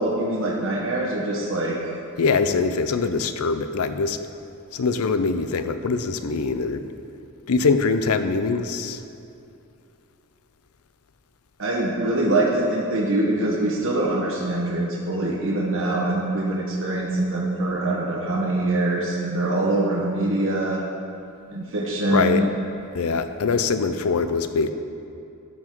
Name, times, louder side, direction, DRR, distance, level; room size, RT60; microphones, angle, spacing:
voice 1, 0.0-1.8 11.6-20.8 21.5-22.4, right 2 dB, 60° right, -4 dB, 1.0 m, -24 dB
voice 2, 2.2-4.2 4.7-6.9 7.5-9.0 22.1-22.5 22.9-24.7, left 4 dB, 80° left, 10 dB, 0.5 m, -23 dB
12.5 x 5.9 x 4.5 m, 2.6 s
head